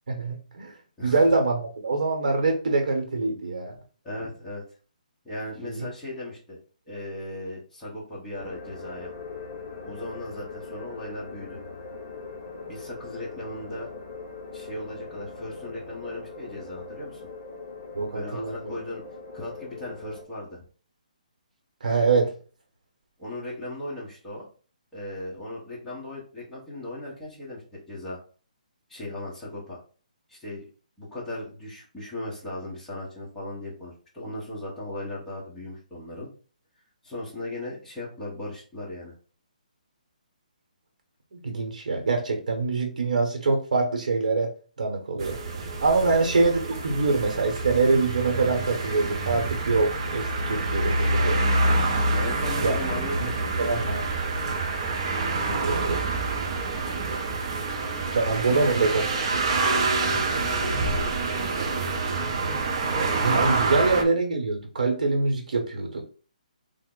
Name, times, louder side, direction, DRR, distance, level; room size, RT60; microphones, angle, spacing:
voice 1, 0.1-0.7 1.0-3.7 5.7-5.9 17.9-18.8 21.8-22.3 41.3-44.5 44.8-45.4 45.8-51.4 52.6-52.7 53.6-54.0 55.6-56.0 58.1-59.0 59.3-59.4 63.2-66.0, right 3 dB, 65° right, 3 dB, 0.9 m, -24 dB
voice 2, 4.0-4.6 5.2-6.6 6.9-9.1 9.8-11.6 12.7-13.9 14.5-17.2 18.1-19.0 19.3-20.6 23.2-24.5 24.9-28.2 28.9-29.8 30.3-30.6 31.0-36.3 37.0-39.1 46.0-46.2 52.1-53.8 55.4-55.9 58.3-58.9 60.1-61.9, left 1 dB, 5° left, -8 dB, 0.9 m, -37 dB
sound 1, 8.3-20.2, left 4 dB, 35° left, 0.7 m, -41 dB
sound 2, 45.2-64.0, right 3 dB, 35° right, 0.4 m, -27 dB
3.5 x 2.0 x 3.7 m, 0.39 s
hypercardioid pair, 170°, 4 cm